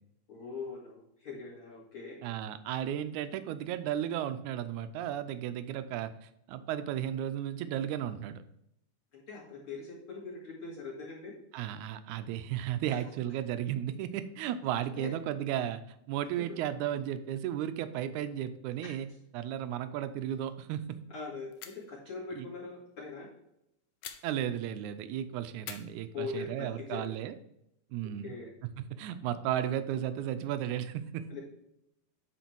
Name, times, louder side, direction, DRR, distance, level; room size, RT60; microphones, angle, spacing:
voice 1, 0.3-2.2 9.1-11.4 12.9-13.0 15.0-15.1 16.4-16.6 21.1-23.3 26.1-27.1 28.2-28.6 31.3-31.4, left 4 dB, 45° left, -6 dB, 3.1 m, -42 dB
voice 2, 2.2-6.1 6.5-8.4 11.5-15.8 16.1-19.1 19.3-21.0 22.4-22.5 24.2-27.3 27.9-28.3 28.8-31.3, right 11 dB, 80° right, 11 dB, 1.8 m, -34 dB
sound 1, 20.3-20.7 20.9-21.0 21.5-22.0 24.0-24.9 25.6-26.8, left 10 dB, 80° left, 1.7 m, -49 dB
9.1 x 4.3 x 4.5 m, 0.78 s
omnidirectional pair, 3.8 m